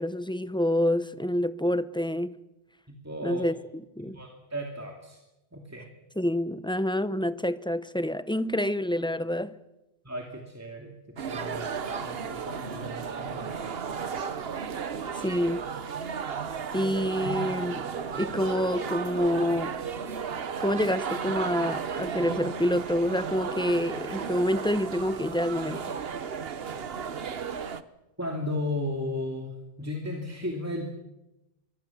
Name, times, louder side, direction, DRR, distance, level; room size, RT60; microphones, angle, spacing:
voice 1, 0.0-2.3 3.2-4.2 6.2-9.5 15.2-15.6 16.7-17.9 18.2-19.8 20.6-25.8, left 1 dB, 5° left, 0.8 m, -27 dB
voice 2, 3.0-3.4 4.1-5.2 5.5-5.9 10.0-13.7 17.2-17.4 28.2-29.5 29.8-30.9, left 1 dB, 15° right, 2.7 m, -35 dB
sound 1, 11.2-27.8, right 6 dB, 70° right, 1.2 m, -34 dB
24.5 x 22.0 x 7.3 m
omnidirectional pair, 1.0 m